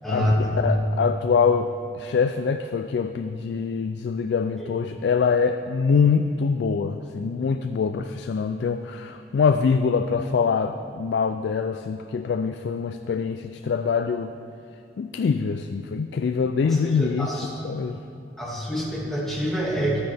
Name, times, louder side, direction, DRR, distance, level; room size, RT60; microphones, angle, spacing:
voice 1, 0.0-0.5 4.6-4.7 16.6-17.5 18.4-20.0, equal, ahead, -6 dB, 2.0 m, -26 dB
voice 2, 0.6-14.3 15.0-18.0, left 5 dB, 80° left, 8 dB, 0.3 m, -24 dB
12.0 x 9.5 x 3.4 m, 2.6 s
head